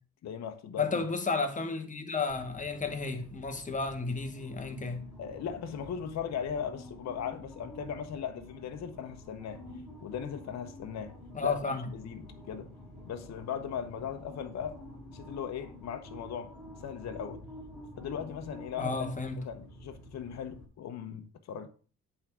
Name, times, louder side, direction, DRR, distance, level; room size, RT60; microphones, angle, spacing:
voice 1, 0.2-0.8 5.2-9.6 10.0-11.1 11.4-12.7 13.0-14.8 15.1-16.5 16.8-17.4 18.0-19.1 19.4-21.7, left 8 dB, 60° left, 0.9 m, -38 dB
voice 2, 0.8-5.0 11.3-11.8 18.8-19.4, left 4 dB, 25° left, 1.4 m, -32 dB
sound 1, 2.3-20.6, left 1 dB, ahead, 3.2 m, -49 dB
8.7 x 3.7 x 6.1 m
cardioid pair, 90°, 30 cm